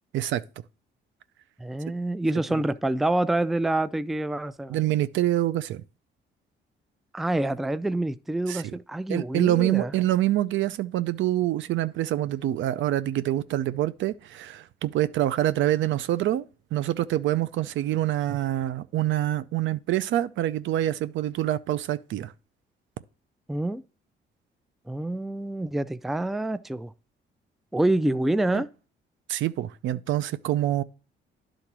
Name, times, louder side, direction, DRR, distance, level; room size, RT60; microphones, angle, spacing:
voice 1, 1.6-4.8 7.1-9.9 23.5-23.8 24.9-26.9 27.7-28.7, right 1 dB, ahead, 0.3 m, -27 dB
voice 2, 4.7-5.8 8.5-8.7 9.1-16.4 16.7-22.3 28.5-28.6 29.3-30.8, right 13 dB, 75° right, 0.5 m, -26 dB
10.0 x 3.8 x 6.0 m
cardioid pair, 90°, 20 cm